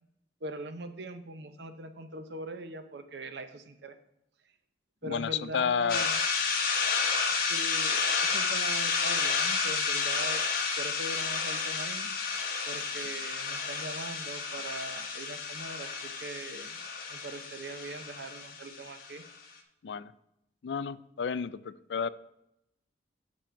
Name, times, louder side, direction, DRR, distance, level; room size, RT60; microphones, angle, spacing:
voice 1, 0.4-4.0 5.0-6.2 7.4-10.4 10.8-12.1 12.6-16.8 17.1-19.2, right 2 dB, 75° right, 9 dB, 0.8 m, -41 dB
voice 2, 5.0-6.1 19.8-20.1 20.6-22.1, left 6 dB, 80° left, 17 dB, 0.4 m, -31 dB
sound 1, 5.9-19.2, left 5 dB, 55° left, 1.2 m, -31 dB
7.3 x 6.3 x 4.5 m, 0.82 s
head